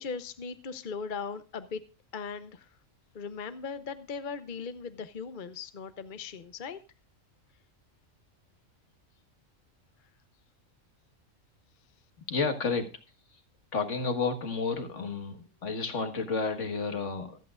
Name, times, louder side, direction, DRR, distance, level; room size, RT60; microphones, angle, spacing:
voice 1, 0.0-1.8 2.1-2.7 3.1-6.8, left 5 dB, 45° left, 11 dB, 0.8 m, -38 dB
voice 2, 12.3-13.0 13.7-17.4, left 4 dB, 65° left, 7 dB, 1.8 m, -31 dB
25.0 x 8.5 x 2.4 m, 0.30 s
omnidirectional pair, 1.4 m